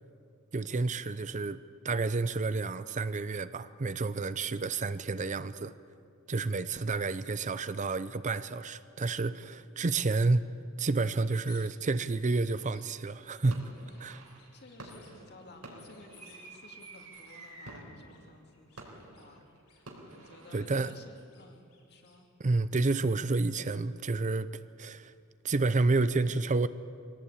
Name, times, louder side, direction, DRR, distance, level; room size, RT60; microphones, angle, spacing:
voice 1, 0.5-1.6 1.8-5.7 6.3-10.5 10.8-13.7 14.0-14.2 20.5-20.9 22.4-24.5 24.8-25.1 25.4-26.7, right 3 dB, 35° right, 14 dB, 0.6 m, -30 dB
sound 1, 11.0-11.6 12.0-12.8 13.2-14.0 14.2-15.1 15.5-16.4 16.8-17.4 17.9-18.2 18.5-19.8 20.1-22.2, left 6 dB, 75° left, 6.1 m, -60 dB
sound 2, 13.5-20.6, right 2 dB, 75° right, 3.9 m, -50 dB
voice 2, 14.5-22.3, left 2 dB, 50° left, 3 dB, 2.5 m, -55 dB
23.0 x 17.5 x 8.7 m, 2.4 s
head